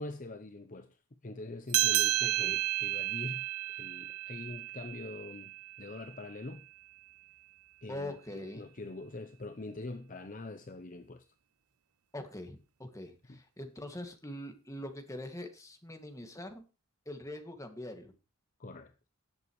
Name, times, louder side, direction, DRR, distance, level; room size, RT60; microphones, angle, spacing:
voice 1, 0.0-6.7 7.8-11.2 13.3-13.4 18.6-18.9, left 2 dB, 35° left, 0.7 m, -44 dB
sound 1, 1.7-6.6, right 16 dB, 80° right, 0.7 m, -32 dB
voice 2, 7.9-8.7 12.1-16.7 17.1-18.1, left 1 dB, 15° left, 2.1 m, -43 dB
18.0 x 8.0 x 3.2 m
head